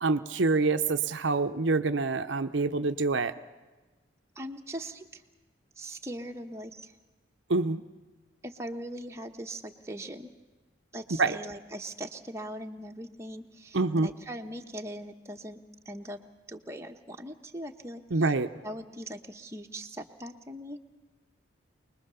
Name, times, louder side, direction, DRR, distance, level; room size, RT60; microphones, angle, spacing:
voice 1, 0.0-3.3 7.5-7.8 11.2-11.4 13.7-14.1 18.1-18.5, right 3 dB, 65° right, 9 dB, 0.7 m, -26 dB
voice 2, 4.3-5.2 5.8-6.9 8.4-10.3 10.9-15.6 15.8-16.2 16.5-18.3 18.6-20.8, right 1 dB, 15° right, 3 dB, 1.0 m, -40 dB
24.5 x 20.5 x 6.9 m, 1.2 s
head